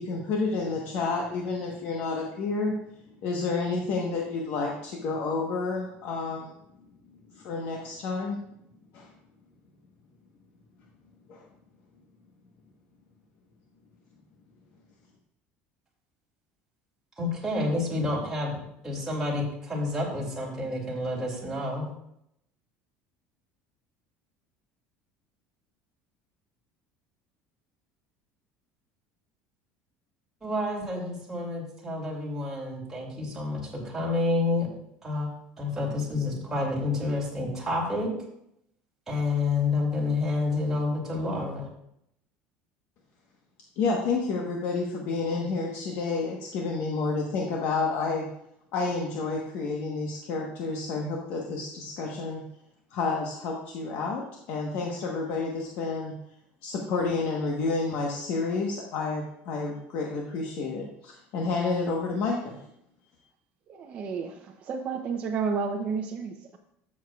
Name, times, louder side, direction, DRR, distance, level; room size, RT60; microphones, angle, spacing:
voice 1, 0.0-2.7 3.2-6.5 7.3-8.4 8.9-9.1 11.3-11.5 43.8-48.3 48.7-52.4 52.9-56.1 56.6-62.6, left 4 dB, 60° left, -1 dB, 1.2 m, -30 dB
voice 2, 17.2-18.6 18.8-21.9 30.4-34.7 35.0-35.3 35.6-38.1 39.1-41.7, left 2 dB, 10° right, -5 dB, 2.4 m, -29 dB
voice 3, 63.7-64.3 64.6-66.6, right 5 dB, 35° right, 2 dB, 0.6 m, -31 dB
13.0 x 7.3 x 2.4 m, 0.76 s
cardioid pair, 155°, 4 cm